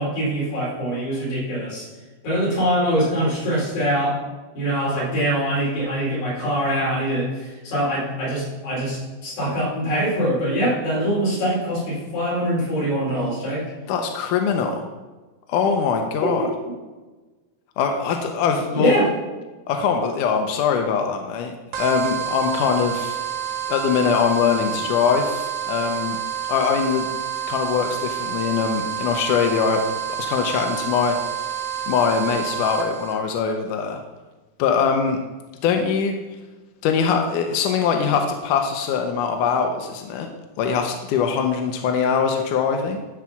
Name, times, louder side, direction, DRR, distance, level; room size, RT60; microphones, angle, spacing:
voice 1, 0.0-1.9 2.2-4.2 4.5-13.6 16.2-16.5 18.7-19.1, equal, 50° left, -5 dB, 5.1 m, -23 dB
voice 2, 13.9-14.8 15.5-16.4 17.8-18.9 19.7-21.5 21.8-23.2 23.7-26.2 26.5-27.1 27.5-29.8 30.2-31.2 31.9-34.0 34.6-35.2 35.6-36.1 36.8-40.3 40.6-43.0, left 6 dB, 80° left, 4 dB, 1.9 m, -22 dB
sound 1, 21.7-33.1, right 9 dB, 70° right, 1.5 m, -29 dB
12.5 x 4.7 x 5.9 m, 1.2 s
omnidirectional pair, 4.5 m